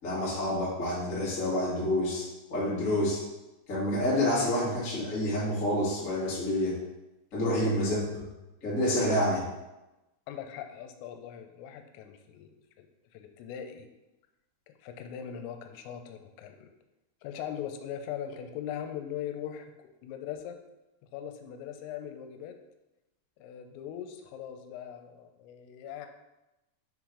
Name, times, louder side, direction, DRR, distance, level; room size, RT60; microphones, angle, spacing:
voice 1, 0.0-3.2 3.7-6.8 7.3-8.2 8.6-9.5, left 1 dB, 45° left, -8 dB, 1.0 m, -28 dB
voice 2, 10.3-12.9 13.1-13.9 14.7-16.7 17.2-20.6 21.1-22.6 23.4-26.1, left 9 dB, 85° left, 6 dB, 3.2 m, -40 dB
7.2 x 3.9 x 4.8 m, 0.98 s
omnidirectional pair, 5.7 m